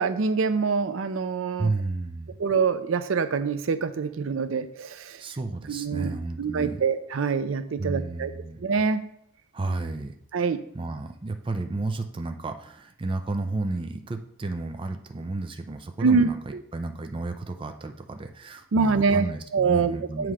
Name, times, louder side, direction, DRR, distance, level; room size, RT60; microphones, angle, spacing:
voice 1, 0.0-1.7 2.4-5.2 5.7-6.1 6.4-8.3 8.6-9.0 10.3-10.6 16.0-16.3 18.7-19.3 19.5-20.3, right 5 dB, 75° right, 11 dB, 0.5 m, -25 dB
voice 2, 1.6-2.4 5.2-6.8 7.8-8.6 9.5-10.1 10.7-20.3, right 2 dB, 25° right, 6 dB, 0.4 m, -32 dB
7.6 x 3.1 x 4.9 m, 0.71 s
head